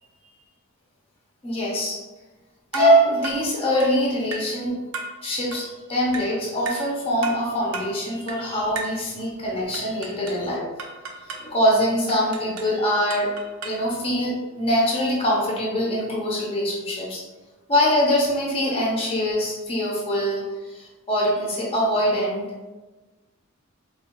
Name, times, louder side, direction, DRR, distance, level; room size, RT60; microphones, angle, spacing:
voice 1, 1.4-2.0 2.7-4.8 5.2-10.6 11.3-13.3 13.6-17.2 17.7-22.5, equal, 25° left, -3 dB, 0.6 m, -23 dB
sound 1, 2.7-3.0 3.2-3.5 3.8-4.0 4.3-4.5 4.9-5.2 5.5-5.7 6.1-6.4 6.7-6.9 7.2-7.5 7.7-8.0 8.3-8.5 8.7-9.0 9.7-10.5 10.8-11.5 12.1-12.8 13.1-13.9, right 3 dB, 75° right, 0.5 m, -35 dB
3.5 x 2.2 x 2.8 m, 1.2 s
head